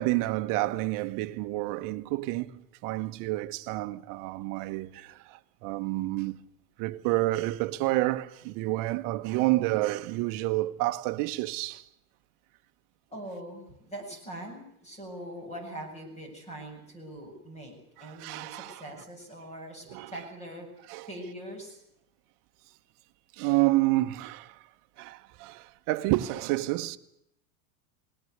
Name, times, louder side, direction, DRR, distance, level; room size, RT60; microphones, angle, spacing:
voice 1, 0.0-6.4 6.8-11.8 18.0-18.8 19.9-20.1 20.9-21.1 23.3-24.6 25.0-27.0, right 18 dB, 45° right, 1.3 m, -29 dB
voice 2, 13.1-21.8, right 1 dB, 15° left, 7.6 m, -42 dB
20.5 x 18.5 x 8.1 m
supercardioid pair, 150°, 44 cm